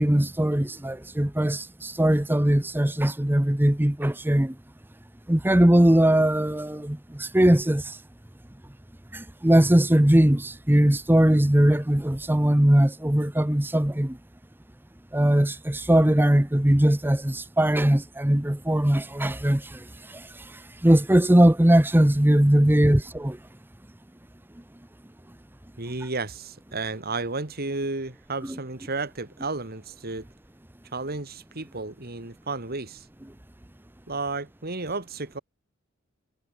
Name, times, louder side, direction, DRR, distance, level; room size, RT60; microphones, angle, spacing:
voice 1, 0.0-4.5 5.3-7.8 9.1-14.2 15.1-19.8 20.8-23.4, right 1 dB, 10° right, 0.8 m, -20 dB
voice 2, 25.8-30.2 30.9-33.1 34.1-35.4, right 3 dB, 45° right, 2.6 m, -32 dB
head